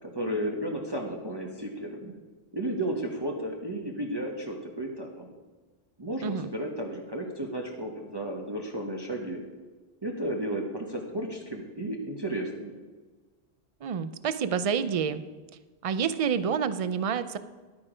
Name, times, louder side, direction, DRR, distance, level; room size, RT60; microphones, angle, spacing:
voice 1, 0.0-2.1 2.5-5.3 6.0-9.4 10.0-12.7, right 1 dB, 25° right, 0 dB, 1.1 m, -33 dB
voice 2, 13.8-15.2 15.8-17.4, right 7 dB, 45° right, 13 dB, 0.5 m, -28 dB
11.0 x 8.7 x 5.0 m, 1.3 s
omnidirectional pair, 1.1 m